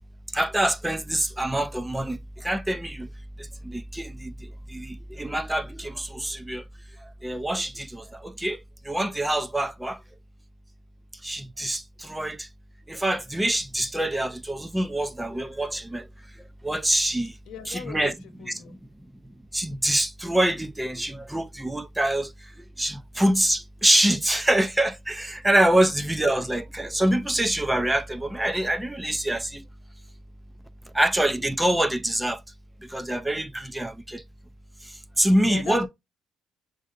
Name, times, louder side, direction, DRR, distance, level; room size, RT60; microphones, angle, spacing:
voice 1, 0.3-3.1 3.4-6.6 7.2-10.0 11.2-12.5 12.9-16.1 16.6-17.3 17.7-18.1 18.7-18.8 19.5-22.5 22.8-29.6 30.9-32.4 32.8-34.2 34.8-35.9, right 1 dB, 5° right, 0.3 m, -25 dB
voice 2, 17.5-18.8 35.4-35.9, left 6 dB, 75° left, 0.8 m, -39 dB
6.3 x 2.5 x 2.4 m
cardioid pair, 130°, 0 cm